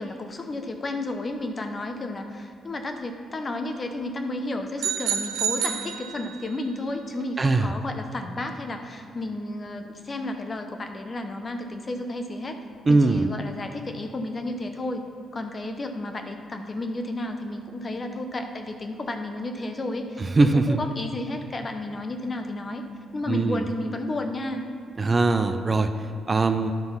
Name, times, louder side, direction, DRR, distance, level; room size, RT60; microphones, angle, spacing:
voice 1, 0.0-12.6 12.9-15.0 15.3-22.8 23.1-24.6, left 2 dB, 40° left, 6 dB, 0.8 m, -32 dB
sound 1, 4.8-6.6, right 7 dB, 85° right, 0.5 m, -29 dB
voice 2, 7.4-7.7 12.9-13.3 20.2-20.8 23.3-23.6 25.0-25.9 26.3-26.7, right 3 dB, 30° right, 9 dB, 0.4 m, -21 dB
10.5 x 3.8 x 5.7 m, 2.3 s
supercardioid pair, 65°, 0 cm